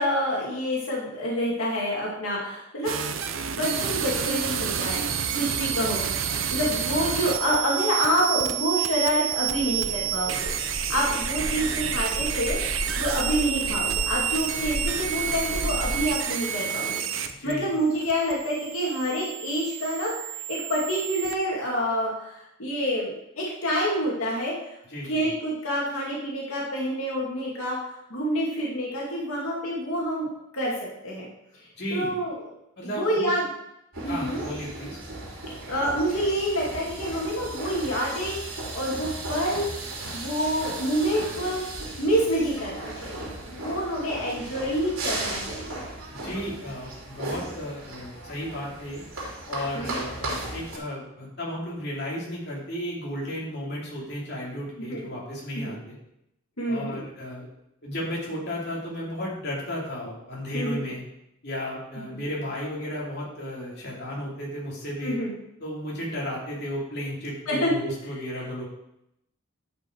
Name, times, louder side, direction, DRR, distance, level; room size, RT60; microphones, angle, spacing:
voice 1, 0.0-2.9 3.5-5.1 5.3-12.6 13.0-24.7 25.0-27.8 28.1-30.3 30.5-30.7 31.0-31.3 31.9-32.3 32.8-33.4 34.0-34.4 35.7-41.6 42.0-45.8 49.8-50.0 54.9-55.1 55.5-55.7 56.6-57.0 60.5-60.9 65.0-65.3 67.5-67.7, equal, 90° left, -4 dB, 2.3 m, -27 dB
sound 1, 2.8-21.3, right 9 dB, 70° right, 0.7 m, -29 dB
sound 2, 9.4-16.1, equal, 15° left, 3.0 m, -34 dB
voice 2, 24.9-25.3 31.8-32.1 32.8-33.3 34.1-35.0 46.2-49.0 49.5-56.0 56.7-57.5 57.8-61.0 61.4-65.2 65.6-68.7, equal, 50° left, -5 dB, 3.0 m, -34 dB
sound 3, 33.9-50.8, right 2 dB, 85° right, 2.8 m, -36 dB
10.5 x 5.5 x 4.6 m, 0.82 s
head